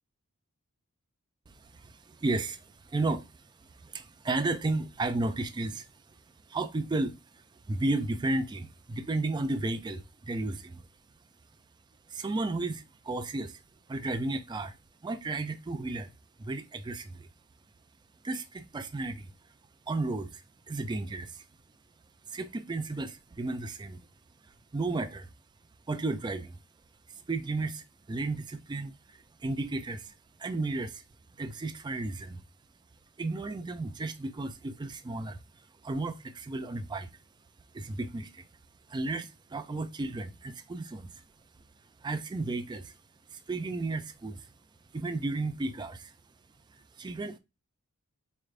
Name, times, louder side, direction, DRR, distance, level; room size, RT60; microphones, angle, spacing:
voice 1, 1.5-5.9 6.5-10.9 12.1-13.6 13.9-14.8 15.0-16.1 16.4-17.3 18.2-19.3 19.9-21.4 22.3-24.0 24.7-25.3 25.9-26.6 27.1-31.0 31.4-32.4 33.2-35.4 35.8-37.1 37.7-38.4 38.9-41.2 42.0-42.9 43.3-44.5 44.9-46.1 47.0-47.4, right 2 dB, 20° right, 0.4 m, -33 dB
4.3 x 3.2 x 2.4 m
head